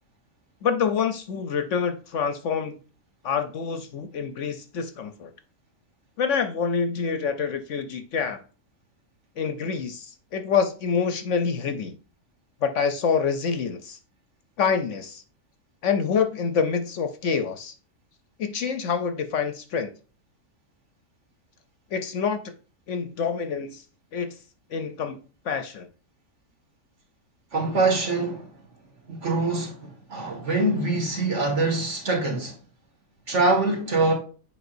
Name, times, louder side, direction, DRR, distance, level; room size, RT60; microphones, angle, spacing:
voice 1, 0.6-2.8 3.2-5.3 6.2-8.4 9.4-11.9 12.6-14.0 14.6-15.2 15.8-17.7 18.4-19.9 21.9-22.5 22.9-23.8 24.1-24.3 24.7-25.9, left 6 dB, 65° left, 0.9 m, -26 dB
voice 2, 27.5-28.6 29.1-32.6 33.3-34.1, right 2 dB, 55° right, 2.2 m, -24 dB
8.0 x 5.0 x 2.5 m
omnidirectional pair, 1.5 m